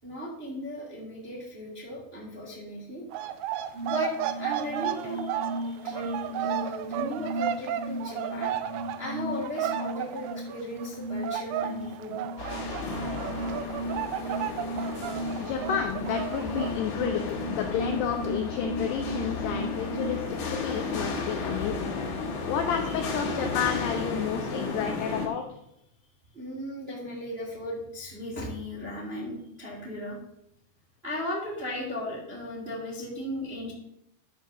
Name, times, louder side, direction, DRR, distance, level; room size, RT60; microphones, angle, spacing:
voice 1, 0.0-3.0 3.8-12.2 17.7-17.9 26.3-30.2 31.0-33.7, left 1 dB, 25° right, -3 dB, 1.4 m, -37 dB
sound 1, 3.1-11.0 11.2-16.7, right 11 dB, 80° right, 2.5 m, -33 dB
sound 2, 3.7-20.2, equal, 55° right, 2.6 m, -36 dB
sound 3, 12.4-25.3, left 4 dB, 60° left, 3.7 m, -34 dB
voice 2, 15.4-22.0 22.5-25.4, left 8 dB, 80° left, 4 dB, 2.4 m, -31 dB
12.0 x 5.1 x 6.7 m, 0.80 s
omnidirectional pair, 5.7 m